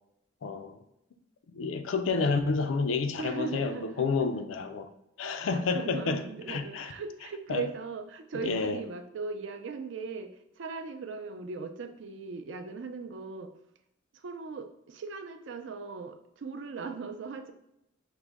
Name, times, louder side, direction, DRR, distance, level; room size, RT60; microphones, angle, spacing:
voice 1, 0.4-0.8 1.5-3.7 4.0-4.9 5.2-6.2 6.5-6.9 7.5-7.6 8.4-8.8, left 4 dB, 90° left, 0.4 m, -29 dB
voice 2, 3.2-4.3 5.2-13.5 14.1-17.5, right 4 dB, 65° right, 0.4 m, -39 dB
4.9 x 2.1 x 3.4 m
head